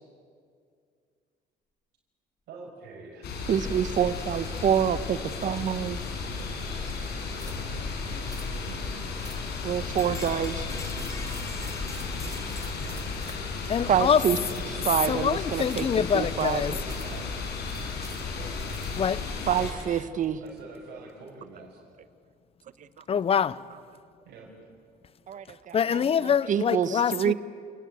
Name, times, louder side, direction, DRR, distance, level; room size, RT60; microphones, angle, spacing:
voice 1, 2.5-4.4 4.7-5.3 7.2-9.1 10.2-11.0 12.8-13.0 13.9-14.7 16.4-17.4 18.3-18.5 20.4-21.8 24.3-24.7, right 3 dB, 80° right, 5.7 m, -47 dB
sound 1, 3.2-19.7, left 4 dB, 75° left, 5.6 m, -34 dB
voice 2, 3.5-6.0 9.6-10.6 13.9-14.4 14.8-15.9 16.1-16.6 19.5-20.4 25.3-26.0 26.5-27.3, right 9 dB, 50° right, 1.2 m, -26 dB
sound 2, 4.0-7.6 8.4-8.5 9.8-13.3 14.2-14.3 15.8-16.0 18.2-18.3 19.7-19.8, left 2 dB, 20° left, 3.9 m, -46 dB
sound 3, 7.4-7.7 8.3-8.5 9.2-9.6 10.2-10.5 10.9-13.5 14.4-14.8 15.6-16.0 16.9-17.2 17.7-19.1, right 4 dB, 20° right, 2.8 m, -49 dB
voice 3, 13.7-14.3 15.1-16.7 19.0-19.2 23.1-23.6 25.7-27.3, left 7 dB, 35° left, 0.7 m, -25 dB
28.5 x 19.0 x 9.0 m
cardioid pair, 110°, 17 cm